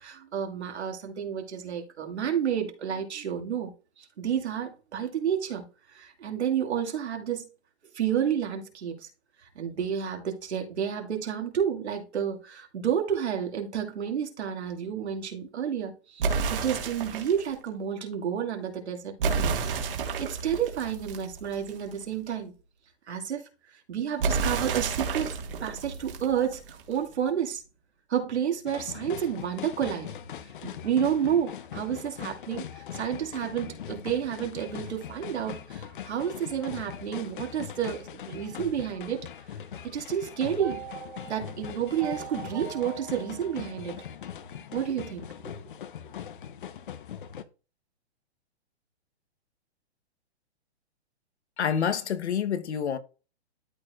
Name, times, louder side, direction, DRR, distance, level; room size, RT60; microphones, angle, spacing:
voice 1, 0.0-3.7 4.0-5.6 5.9-7.5 7.9-9.1 9.6-16.2 16.5-19.5 20.2-22.5 23.1-23.4 23.9-25.3 25.6-26.6 26.9-27.6 28.1-30.2 30.6-39.3 39.8-40.8 41.3-44.0 44.7-45.5, right 8 dB, 80° right, 2.4 m, -30 dB
sound 1, 16.2-17.5 19.2-21.9 24.2-26.9, right 5 dB, 55° right, 1.8 m, -30 dB
sound 2, 28.7-47.4, left 9 dB, 50° left, 0.7 m, -41 dB
sound 3, 40.6-44.8, right 7 dB, 15° right, 1.3 m, -42 dB
voice 2, 51.6-53.0, left 8 dB, 85° left, 1.1 m, -27 dB
12.5 x 4.5 x 2.4 m
hypercardioid pair, 170°, 33 cm